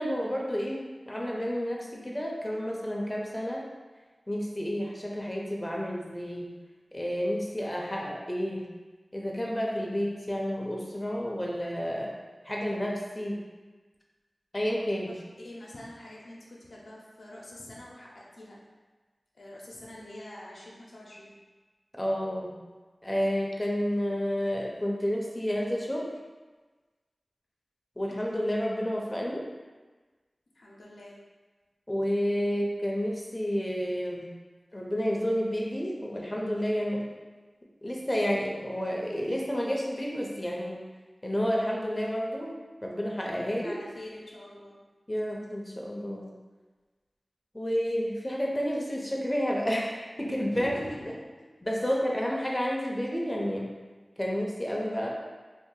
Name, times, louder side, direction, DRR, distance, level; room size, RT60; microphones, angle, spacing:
voice 1, 0.0-3.6 4.3-6.5 6.9-8.7 9.1-12.1 12.4-13.4 14.5-15.1 21.9-22.6 23.0-26.1 28.0-29.4 31.9-34.3 34.7-37.1 37.8-40.8 41.2-43.7 45.1-46.2 47.5-50.7 51.6-53.7 54.2-55.1, equal, 20° left, -2 dB, 0.6 m, -30 dB
voice 2, 15.1-18.6 19.3-21.3 30.5-31.2 43.4-44.8 50.5-51.2 51.8-51.9, left 1 dB, 85° left, -5 dB, 0.6 m, -45 dB
2.7 x 2.4 x 3.8 m, 1.3 s
cardioid pair, 40°, 0 cm